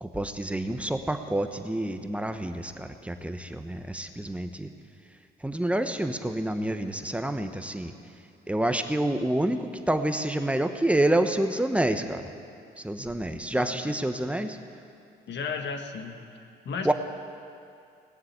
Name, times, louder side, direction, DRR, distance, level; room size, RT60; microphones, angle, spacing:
voice 1, 0.0-4.7 5.4-7.9 8.5-12.3 12.8-14.6 16.8-16.9, right 1 dB, 5° right, 7 dB, 1.0 m, -28 dB
voice 2, 13.5-13.9 15.3-16.9, left 5 dB, 65° left, 5 dB, 1.5 m, -35 dB
18.5 x 7.6 x 8.8 m, 2.5 s
cardioid pair, 90°, 20 cm